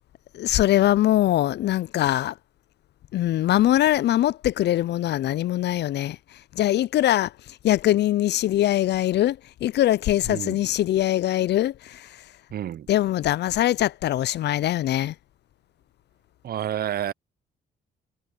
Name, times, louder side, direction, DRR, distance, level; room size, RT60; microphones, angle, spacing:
voice 1, 0.3-2.3 3.1-6.2 6.6-7.3 7.6-12.0 12.9-15.1, left 13 dB, 60° left, 0.4 m, -22 dB
voice 2, 10.2-10.6 12.5-12.9 16.4-17.1, right 10 dB, 50° right, 0.5 m, -29 dB
cardioid pair, 90°, 20 cm